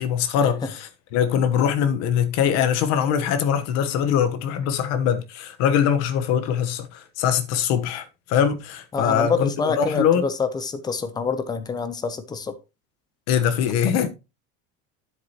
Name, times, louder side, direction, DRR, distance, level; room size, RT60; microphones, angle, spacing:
voice 1, 0.0-10.2 13.3-14.1, left 8 dB, 50° left, 1.2 m, -22 dB
voice 2, 8.9-12.5, left 5 dB, 10° left, 0.7 m, -26 dB
9.6 x 7.8 x 3.0 m
cardioid pair, 170°, 33 cm